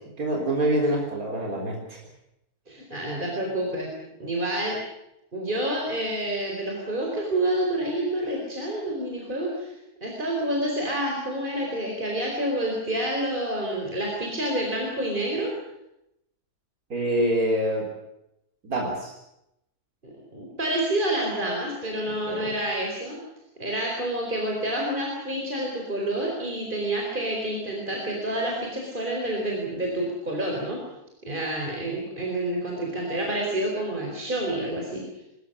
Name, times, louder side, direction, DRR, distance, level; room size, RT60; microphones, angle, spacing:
voice 1, 0.2-2.0 16.9-17.8 18.6-19.1 22.1-22.5, right 1 dB, 70° right, 0 dB, 4.4 m, -26 dB
voice 2, 2.7-3.9 4.2-4.8 5.3-9.7 10.0-15.5 20.0-23.2 23.6-30.8 31.3-35.0, right 1 dB, 35° right, -1 dB, 4.7 m, -28 dB
24.5 x 14.0 x 10.0 m, 0.86 s
omnidirectional pair, 1.6 m